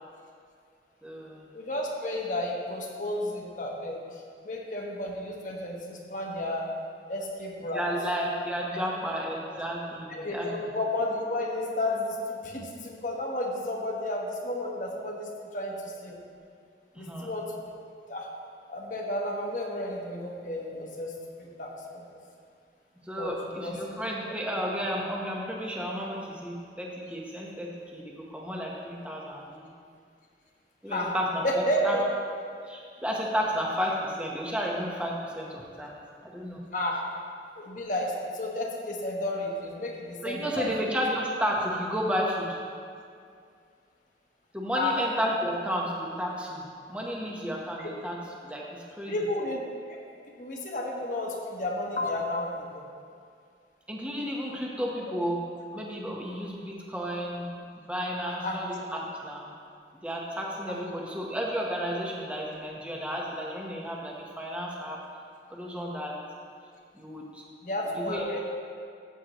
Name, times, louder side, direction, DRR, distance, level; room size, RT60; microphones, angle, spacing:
voice 1, 1.0-1.4 7.7-10.7 17.0-17.3 23.1-29.7 30.8-31.4 31.8-32.0 32.7-35.9 36.2-36.6 40.2-42.6 44.5-49.1 53.9-55.4 55.7-57.5 57.9-59.5 60.0-65.0 65.5-66.1 66.9-67.4 68.0-68.3, equal, 5° right, -3 dB, 1.1 m, -32 dB
voice 2, 1.5-6.7 7.1-7.9 9.1-9.2 10.1-16.2 17.0-17.7 18.1-18.3 18.7-22.0 23.2-23.3 23.6-23.8 24.2-24.3 30.9-31.1 31.4-32.0 36.7-37.0 37.6-40.7 44.7-45.0 49.1-50.0 50.4-52.8 58.3-58.6 67.6-68.4, left 1 dB, 45° left, -1 dB, 1.2 m, -32 dB
14.0 x 8.4 x 3.1 m, 2.2 s
head